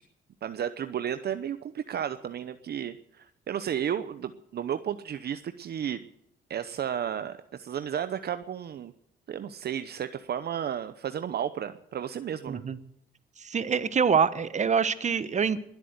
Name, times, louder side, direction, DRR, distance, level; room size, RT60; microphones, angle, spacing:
voice 1, 0.4-6.1 6.5-8.9 9.3-12.6, right 9 dB, 55° right, 11 dB, 0.8 m, -33 dB
voice 2, 12.5-12.8 13.4-15.6, right 6 dB, 35° right, 14 dB, 1.1 m, -25 dB
21.0 x 8.4 x 8.0 m, 0.81 s
cardioid pair, 90°, 20 cm